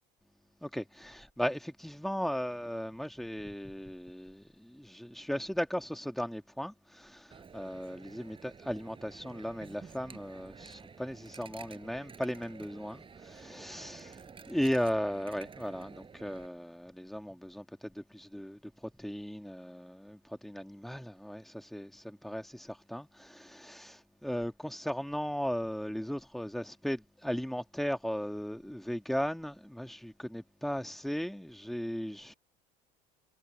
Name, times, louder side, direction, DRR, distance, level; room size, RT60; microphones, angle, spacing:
voice 1, 0.6-14.2 14.5-32.3, equal, ahead, 2.1 m, -37 dB
Coin (dropping), 7.3-16.5, right 5 dB, 25° right, 5.5 m, -51 dB
supercardioid pair, 110°, 21 cm